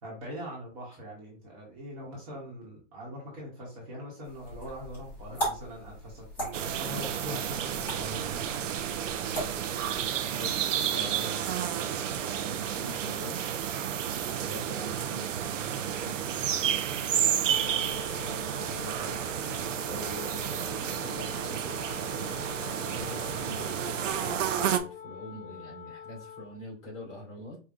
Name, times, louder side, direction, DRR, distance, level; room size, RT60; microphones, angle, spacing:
voice 1, 0.0-8.4, equal, 30° right, -3 dB, 1.0 m, -42 dB
sound 1, 4.2-10.1, right 1 dB, 5° left, 0.8 m, -39 dB
sound 2, 6.5-24.8, right 9 dB, 80° right, 0.6 m, -31 dB
voice 2, 10.3-13.4 14.4-17.7 18.3-19.2 19.9-27.6, left 1 dB, 30° left, -4 dB, 1.9 m, -45 dB
Wind instrument woodwind instrument, 17.4-26.6, left 7 dB, 55° left, 0.5 m, -44 dB
5.2 x 2.2 x 2.4 m, 0.36 s
hypercardioid pair, 170°, 37 cm